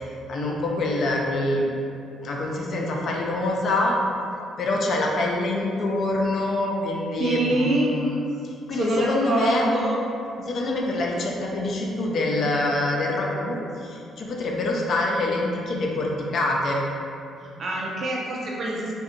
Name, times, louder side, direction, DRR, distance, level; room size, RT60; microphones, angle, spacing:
voice 1, 0.3-1.7 2.2-4.0 4.6-8.2 8.7-9.6 10.4-16.8, left 2 dB, 60° left, -1 dB, 0.4 m, -25 dB
voice 2, 7.2-8.0 8.7-10.0 17.4-19.0, right 2 dB, 50° right, -4 dB, 0.6 m, -25 dB
2.7 x 2.2 x 2.5 m, 2.5 s
supercardioid pair, 60°, 0 cm